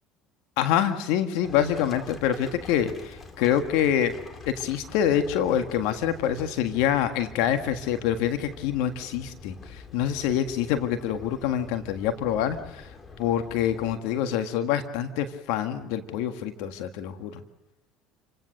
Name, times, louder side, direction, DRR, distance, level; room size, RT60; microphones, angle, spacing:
voice 1, 0.6-4.1 4.4-12.9 13.2-17.4, left 10 dB, 75° left, 8 dB, 1.6 m, -26 dB
Livestock farm animals working animals, 1.4-13.9, left 4 dB, 35° left, 2.7 m, -45 dB
29.0 x 17.5 x 6.6 m, 0.98 s
supercardioid pair, 85°, 0 cm